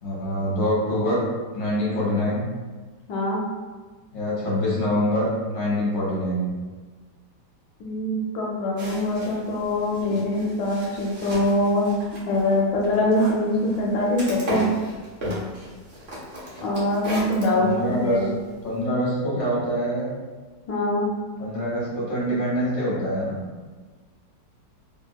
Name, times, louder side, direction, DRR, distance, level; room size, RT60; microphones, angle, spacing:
voice 1, 0.0-1.2 1.5-2.5 4.1-6.5 17.5-18.2 18.6-20.1 21.4-23.4, equal, 40° left, -7 dB, 1.3 m, -25 dB
voice 2, 3.1-3.4 7.8-11.9 12.3-14.7 16.6-18.3 20.7-21.1, left 1 dB, 80° left, -4 dB, 1.2 m, -23 dB
sound 1, 8.8-18.8, equal, 50° right, 0.8 m, -35 dB
3.1 x 2.8 x 2.2 m, 1.3 s
omnidirectional pair, 1.9 m